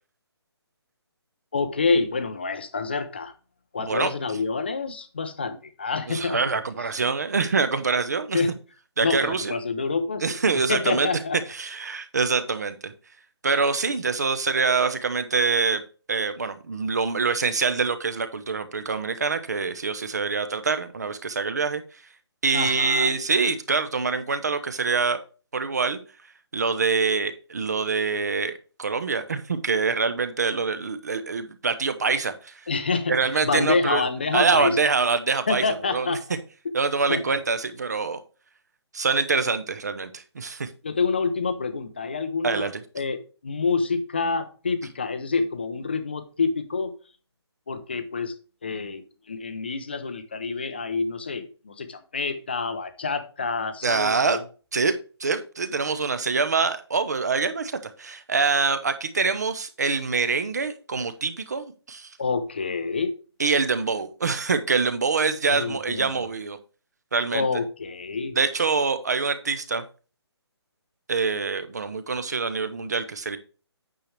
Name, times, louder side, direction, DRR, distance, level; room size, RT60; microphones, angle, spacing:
voice 1, 1.5-3.3 3.7-6.4 8.3-8.5 9.0-10.4 10.7-11.4 22.5-23.1 32.7-33.1 33.4-34.8 35.5-36.2 37.1-37.2 40.8-42.7 42.9-46.9 47.7-48.3 48.6-54.4 62.2-63.1 65.5-66.1 67.3-68.4, left 4 dB, 25° left, 10 dB, 0.6 m, -27 dB
voice 2, 3.8-4.1 6.1-8.4 9.0-9.5 10.2-11.1 11.5-12.9 13.4-15.8 16.1-21.8 22.4-25.2 25.5-26.0 26.5-28.5 28.8-32.5 33.1-34.0 34.3-35.6 35.9-36.2 36.7-38.2 38.9-40.7 42.4-42.7 53.8-54.4 54.7-54.9 55.2-62.1 63.4-66.6 67.1-67.5 68.3-69.8 71.1-73.4, right 4 dB, 40° right, 11 dB, 0.9 m, -25 dB
8.9 x 6.8 x 3.2 m, 0.36 s
hypercardioid pair, 180°, 14 cm